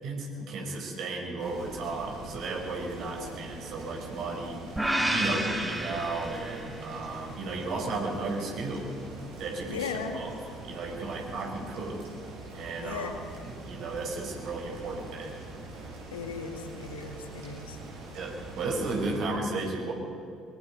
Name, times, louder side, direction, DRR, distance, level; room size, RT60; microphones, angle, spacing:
voice 1, 0.0-4.6 5.1-8.9 9.4-12.0 12.5-15.3 18.1-19.9, right 3 dB, 55° right, 1 dB, 4.8 m, -34 dB
sound 1, 1.4-19.2, right 2 dB, 70° right, 6.4 m, -44 dB
voice 2, 3.0-3.4 5.3-5.6 9.7-10.2 12.8-13.2 16.1-17.8, left 6 dB, 80° left, 6 dB, 1.8 m, -37 dB
sound 2, 4.8-7.0, right 1 dB, 10° right, 3.2 m, -30 dB
23.5 x 22.0 x 5.4 m, 2.6 s
figure-of-eight pair, 55°, 0 cm